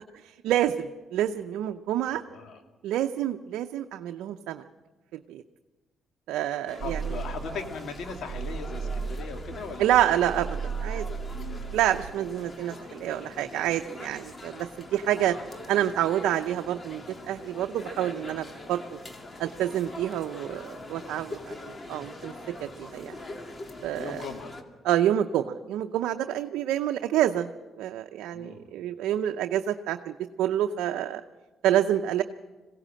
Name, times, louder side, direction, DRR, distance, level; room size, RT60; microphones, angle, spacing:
voice 1, 0.4-2.2 2.8-4.6 5.1-5.4 6.3-7.0 9.8-10.5 10.8-11.0 11.7-15.4 15.7-18.8 19.4-23.2 23.8-24.2 24.8-27.5 27.8-31.2 31.6-32.2, right 11 dB, 85° right, 6 dB, 0.6 m, -28 dB
voice 2, 2.1-2.6 6.8-10.5 11.3-11.7 20.4-21.1 24.0-24.6 28.3-28.7, left 5 dB, 70° left, 5 dB, 2.3 m, -40 dB
sound 1, 6.7-24.6, left 2 dB, 30° left, 2.1 m, -43 dB
sound 2, 6.8-12.1, right 6 dB, 70° right, 1.1 m, -35 dB
21.0 x 16.5 x 7.6 m, 1.2 s
cardioid pair, 85°, 0 cm